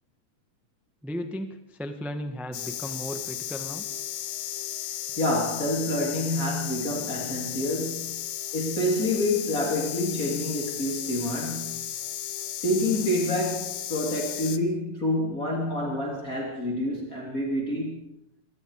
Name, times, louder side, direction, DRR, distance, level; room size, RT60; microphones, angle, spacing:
voice 1, 1.0-3.8, equal, ahead, 6 dB, 1.0 m, -35 dB
sound 1, 2.5-14.6, left 11 dB, 65° left, 1.9 m, -34 dB
voice 2, 5.2-11.9 12.6-18.1, left 1 dB, 30° left, -2 dB, 3.6 m, -28 dB
26.5 x 21.0 x 5.0 m, 0.84 s
omnidirectional pair, 3.4 m